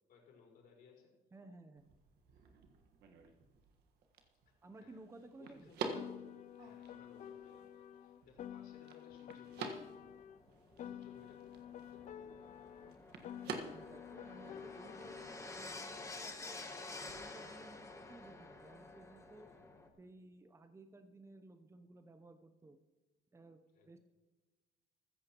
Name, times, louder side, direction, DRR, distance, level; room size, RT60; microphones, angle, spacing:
voice 1, 0.1-1.1 2.3-2.4 4.4-5.0 5.4-5.8 6.6-9.7 10.8-11.6 11.8-12.4 14.3-15.1 19.4-20.1 23.7-24.0, left 5 dB, 65° left, -1 dB, 4.8 m, -63 dB
voice 2, 1.3-1.9 4.6-5.7 13.5-16.7 17.0-19.5 20.0-22.8 23.3-24.0, right 2 dB, 15° right, 7 dB, 0.7 m, -57 dB
sound 1, 1.8-17.3, right 4 dB, 70° right, 1.5 m, -50 dB
Piano, 5.9-10.4 10.8-15.4, left 10 dB, 45° left, 0.5 m, -50 dB
sound 2, 9.8-19.9, left 3 dB, 20° left, 1.4 m, -51 dB
15.0 x 14.5 x 3.0 m, 1.2 s
cardioid pair, 110°, 17 cm